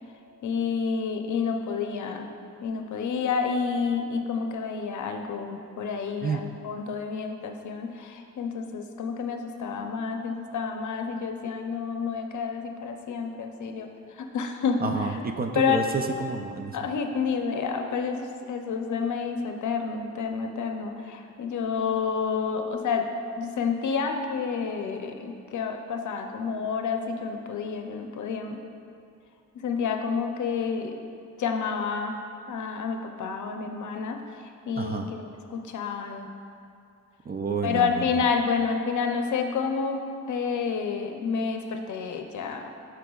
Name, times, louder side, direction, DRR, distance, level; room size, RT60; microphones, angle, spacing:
voice 1, 0.4-2.3 2.6-13.9 14.2-14.8 15.5-15.8 16.7-23.0 23.4-28.6 29.6-31.0 31.4-32.1 32.5-34.2 34.7-36.3 37.6-42.8, left 5 dB, 65° left, 5 dB, 0.6 m, -29 dB
voice 2, 14.8-16.8 34.8-35.1 37.3-38.1, right 4 dB, 30° right, 5 dB, 0.4 m, -30 dB
11.0 x 4.6 x 2.3 m, 2.5 s
cardioid pair, 100°, 32 cm